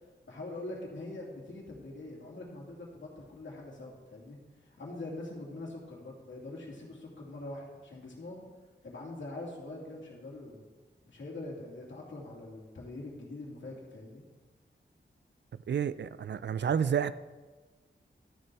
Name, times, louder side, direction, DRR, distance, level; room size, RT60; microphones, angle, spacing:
voice 1, 0.2-4.4 4.6-8.4 8.8-10.6 11.1-14.2, left 2 dB, 85° left, -3 dB, 2.7 m, -43 dB
voice 2, 15.7-17.1, right 8 dB, 70° right, 15 dB, 0.4 m, -30 dB
12.5 x 6.8 x 4.7 m, 1.3 s
wide cardioid pair, 120°, 19 cm